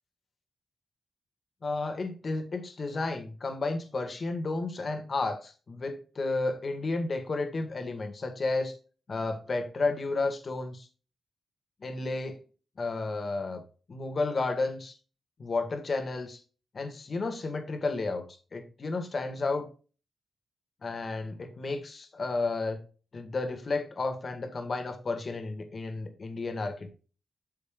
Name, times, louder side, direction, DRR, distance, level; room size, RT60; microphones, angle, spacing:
voice 1, 1.6-8.7 9.1-10.9 11.8-12.4 12.8-13.6 13.9-14.9 15.4-16.4 16.7-18.2 18.5-19.7 20.8-22.8 23.1-26.9, left 3 dB, 50° left, 6 dB, 1.8 m, -32 dB
8.9 x 6.8 x 2.4 m, 0.37 s
cardioid pair, 90°, 0 cm